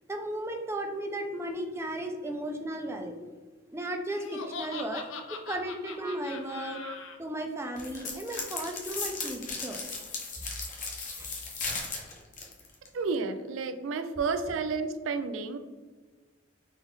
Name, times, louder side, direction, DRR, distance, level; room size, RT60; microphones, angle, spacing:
voice 1, 0.1-3.2 3.7-5.0 5.3-6.8 7.2-9.8 11.2-11.3, right 1 dB, 15° right, 4 dB, 0.4 m, -35 dB
Laughter, 4.1-7.2, left 5 dB, 80° left, 0.5 m, -41 dB
sound 1, 7.8-12.9, left 4 dB, 40° left, 0.8 m, -36 dB
voice 2, 12.9-15.6, right 4 dB, 75° right, 9 dB, 0.4 m, -31 dB
4.0 x 2.5 x 3.5 m, 1.3 s
head